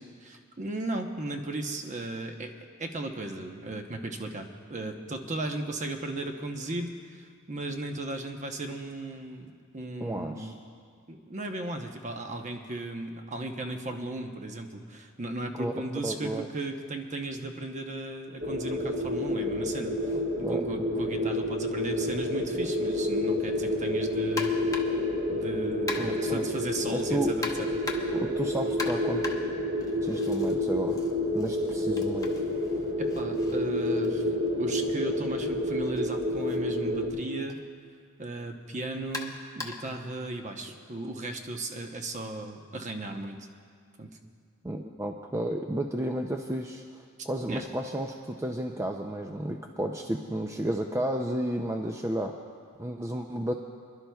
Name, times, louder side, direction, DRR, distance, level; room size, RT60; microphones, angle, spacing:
voice 1, 0.2-10.5 11.1-20.1 20.4-24.8 25.3-27.8 33.0-37.6 38.2-43.4 44.0-44.2 47.5-47.6, right 2 dB, 35° right, 4 dB, 0.9 m, -36 dB
voice 2, 10.0-10.5 15.6-15.7 16.0-16.5 20.4-20.9 26.0-26.4 26.9-27.3 28.1-29.3 30.0-31.0 31.3-32.3 44.6-52.4 52.8-53.5, right 1 dB, 15° right, 3 dB, 0.5 m, -32 dB
sound 1, 18.4-37.1, left 1 dB, 55° right, 2.9 m, -29 dB
sound 2, 24.4-25.1 25.9-26.4 27.4-28.3 28.8-30.5 30.9-34.7 35.8-36.0 36.5-36.6 37.5-37.6 39.1-40.0, left 3 dB, 15° left, 0.9 m, -39 dB
27.0 x 11.5 x 2.3 m, 2.1 s
head